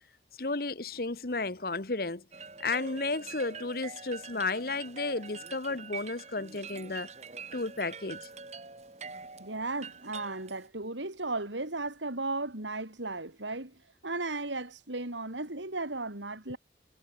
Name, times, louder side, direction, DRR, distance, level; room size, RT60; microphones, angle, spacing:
voice 1, 0.4-2.2 2.6-7.1 7.5-8.2, left 3 dB, 55° left, 1.2 m, -33 dB
Xylophone in the distance (outside), 2.3-10.7, right 5 dB, 35° right, 2.6 m, -45 dB
voice 2, 9.4-16.6, right 2 dB, 85° right, 4.2 m, -35 dB
head